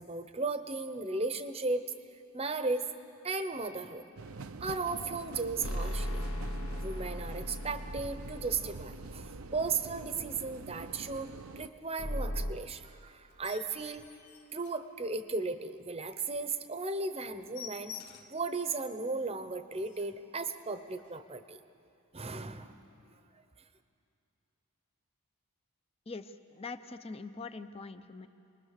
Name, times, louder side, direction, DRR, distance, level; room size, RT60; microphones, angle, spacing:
voice 1, 0.0-1.9 2.3-2.9 3.2-4.1 4.6-6.2 6.8-14.1 14.5-17.9 18.3-21.6 22.1-22.7, right 3 dB, 25° right, 10 dB, 0.9 m, -35 dB
sound 1, 4.2-11.7, right 3 dB, 70° right, 0.7 m, -46 dB
sound 2, 5.6-10.1 12.0-12.5, equal, 75° left, 1.4 m, -37 dB
sound 3, 13.3-15.4 15.9-16.0 16.4-16.5 16.8-16.9 17.2-18.5 19.0-19.1 19.4-19.5 19.7-20.2 21.0-21.2, left 8 dB, 45° left, 1.6 m, -49 dB
voice 2, 26.1-28.3, left 3 dB, 25° left, 10 dB, 0.7 m, -43 dB
29.0 x 21.0 x 6.7 m, 2.6 s
head